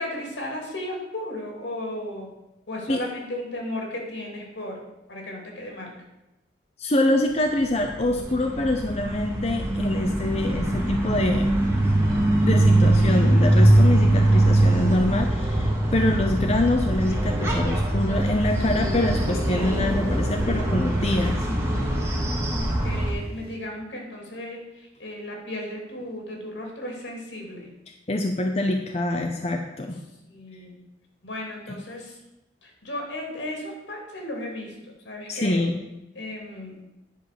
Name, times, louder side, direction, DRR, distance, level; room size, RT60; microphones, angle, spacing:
voice 1, 0.0-2.3 2.7-4.8 5.1-5.9 22.5-27.7 30.3-30.7 31.2-32.2 32.6-35.6 36.1-36.8, left 1 dB, 80° left, 0 dB, 2.9 m, -35 dB
voice 2, 6.8-11.5 12.4-21.5 28.1-30.0 31.7-31.8 35.3-35.7, left 1 dB, 35° left, 3 dB, 0.7 m, -25 dB
sound 1, 7.6-23.1, right 1 dB, 15° right, 1.5 m, -22 dB
sound 2, 18.6-23.6, equal, 55° right, 1.7 m, -38 dB
10.0 x 5.3 x 6.8 m, 0.96 s
head